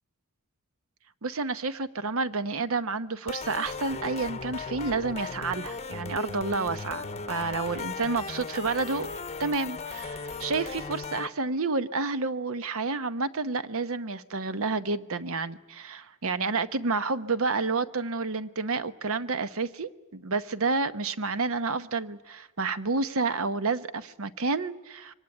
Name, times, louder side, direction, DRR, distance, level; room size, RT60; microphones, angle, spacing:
voice 1, 1.2-9.1 9.4-25.1, right 4 dB, 65° right, 0.9 m, -30 dB
sound 1, 3.3-11.3, left 4 dB, 30° left, 0.8 m, -37 dB
24.0 x 18.5 x 9.8 m
head